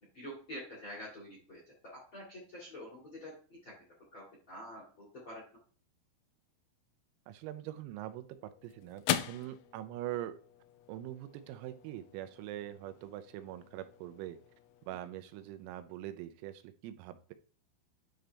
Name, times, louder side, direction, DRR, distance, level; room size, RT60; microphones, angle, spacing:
voice 1, 0.1-1.6 2.1-3.3 3.6-3.7 4.1-5.4, equal, 40° left, -3 dB, 1.9 m, -46 dB
voice 2, 7.3-10.4 10.9-14.4 14.9-17.3, right 13 dB, 85° right, 10 dB, 3.4 m, -43 dB
sound 1, 7.8-16.3, left 13 dB, 90° left, 3.3 m, -42 dB
10.0 x 3.8 x 3.4 m, 0.41 s
omnidirectional pair, 6.0 m